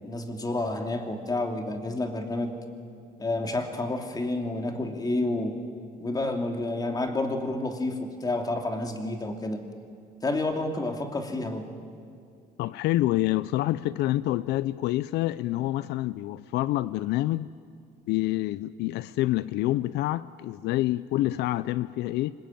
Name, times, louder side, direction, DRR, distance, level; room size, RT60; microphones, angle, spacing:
voice 1, 0.0-2.5 3.2-5.5 6.0-9.6 10.2-11.6, left 2 dB, 20° left, 5 dB, 2.8 m, -29 dB
voice 2, 12.6-17.5 18.1-22.3, left 16 dB, 80° left, 17 dB, 0.5 m, -27 dB
26.5 x 20.5 x 9.2 m, 2.3 s
cardioid pair, 110°, 17 cm